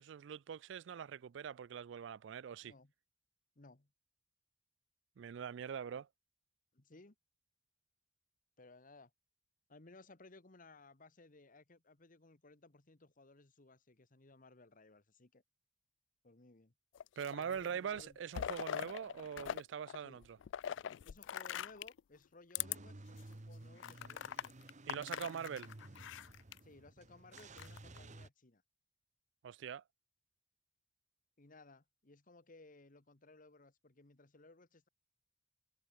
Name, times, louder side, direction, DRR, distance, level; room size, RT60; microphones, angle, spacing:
voice 1, 0.0-2.7 5.2-6.1 17.2-20.4 24.9-25.7 29.4-29.8, right 7 dB, 75° right, 0.4 m, -43 dB
voice 2, 2.6-2.9 3.5-3.9 5.9-6.0 6.7-7.1 8.6-9.1 9.7-15.4 16.2-16.7 17.4-18.2 20.0-20.2 21.0-24.7 26.6-28.6 31.4-34.9, left 3 dB, 45° left, 1.5 m, -60 dB
sound 1, 17.0-17.6 18.0-19.6 19.9-22.0 22.5-22.8 23.2-23.3 23.8-26.6 27.4-28.0, left 9 dB, 90° left, 0.4 m, -42 dB
Car / Engine starting / Idling, 22.6-28.3, right 2 dB, 40° right, 1.1 m, -54 dB
head